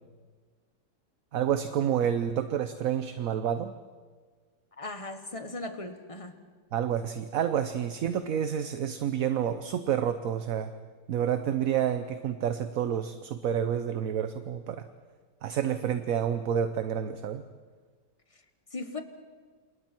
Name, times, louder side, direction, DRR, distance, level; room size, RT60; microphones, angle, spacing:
voice 1, 1.3-3.7 6.7-10.7 11.1-14.9 15.4-17.4, right 9 dB, 60° right, 10 dB, 1.1 m, -29 dB
voice 2, 4.8-6.3 18.7-19.0, left 2 dB, 20° left, 7 dB, 1.4 m, -38 dB
28.5 x 27.5 x 4.5 m, 1.5 s
omnidirectional pair, 1.9 m